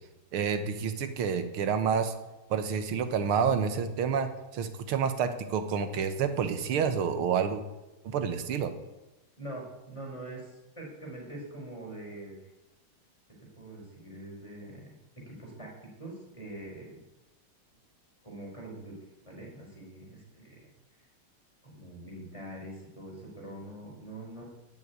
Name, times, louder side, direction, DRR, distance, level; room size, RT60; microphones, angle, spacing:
voice 1, 0.3-2.1 2.5-7.6 8.0-8.7, right 6 dB, 85° right, 9 dB, 2.0 m, -29 dB
voice 2, 9.4-12.5 13.6-14.9 15.2-17.0 18.2-18.9 19.2-20.7 21.0-21.1 21.6-24.4, right 1 dB, 15° left, -2 dB, 4.9 m, -44 dB
10.5 x 9.7 x 9.4 m, 1.0 s
omnidirectional pair, 2.3 m